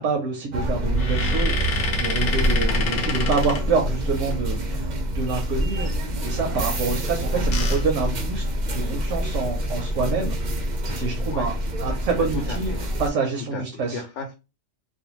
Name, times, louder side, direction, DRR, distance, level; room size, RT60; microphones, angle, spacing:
voice 1, 0.0-5.9 6.2-10.7 11.0-14.0, right 4 dB, 85° right, 2 dB, 0.9 m, -27 dB
sound 1, 0.5-13.1, right 1 dB, 55° right, 0.5 m, -26 dB
sound 2, 0.9-4.3 7.0-9.0 9.5-9.6 9.8-10.0 11.5-11.9 12.5-13.0, left 5 dB, 60° left, 0.7 m, -30 dB
voice 2, 12.2-12.8 13.5-14.3, left 4 dB, 85° left, 2 dB, 0.9 m, -35 dB
2.5 x 2.2 x 2.9 m, 0.29 s
omnidirectional pair, 1.2 m